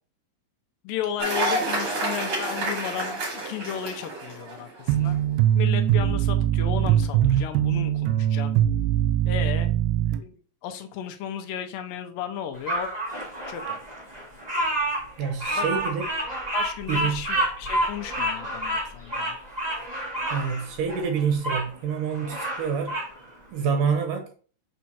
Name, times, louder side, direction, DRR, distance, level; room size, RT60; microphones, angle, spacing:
voice 1, 0.8-5.2 5.6-8.6 9.3-9.7 10.2-10.3 10.6-12.9 13.5-13.8 15.6-15.7 16.5-19.4, left 9 dB, 80° left, 2.2 m, -34 dB
Cheering / Applause, 1.2-4.9, right 1 dB, 40° right, 2.4 m, -29 dB
sound 1, 4.9-10.2, right 11 dB, 90° right, 2.5 m, -22 dB
Bird vocalization bird call bird song, 12.7-21.7 22.1-23.1, right 1 dB, 20° right, 1.1 m, -29 dB
voice 2, 15.2-16.1 16.9-17.3 20.3-23.0 23.5-24.3, right 6 dB, 70° right, 2.4 m, -27 dB
6.2 x 5.6 x 2.8 m
omnidirectional pair, 4.3 m